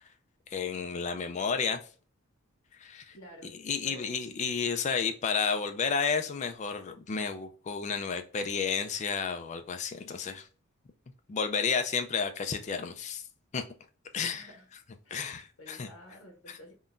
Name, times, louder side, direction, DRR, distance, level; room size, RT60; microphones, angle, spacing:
voice 1, 0.5-1.8 2.8-3.2 3.6-10.5 11.3-13.2 13.5-13.6 14.1-14.5 15.1-15.9 16.5-16.6, left 5 dB, 35° left, 7 dB, 0.3 m, -31 dB
voice 2, 3.1-3.6 3.8-4.4 14.2-14.7 15.0-15.3 15.6-16.7, left 1 dB, 80° left, 2 dB, 1.0 m, -51 dB
3.7 x 2.2 x 2.4 m, 0.39 s
head